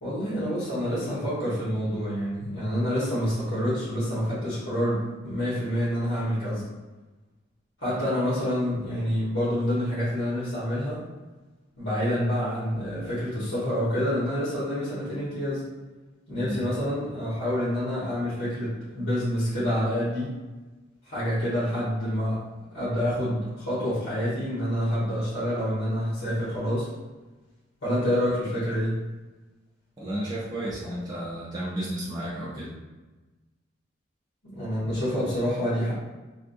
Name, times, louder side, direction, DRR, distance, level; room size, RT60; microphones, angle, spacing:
voice 1, 0.0-6.6 7.8-11.0 11.8-15.6 16.3-20.3 21.0-22.4 22.7-26.9 27.8-28.9 34.5-35.9, equal, 85° left, -12 dB, 1.5 m, -27 dB
voice 2, 30.0-32.7 34.8-34.9, right 1 dB, 20° right, -7 dB, 0.5 m, -33 dB
3.5 x 2.5 x 2.6 m, 1.2 s
head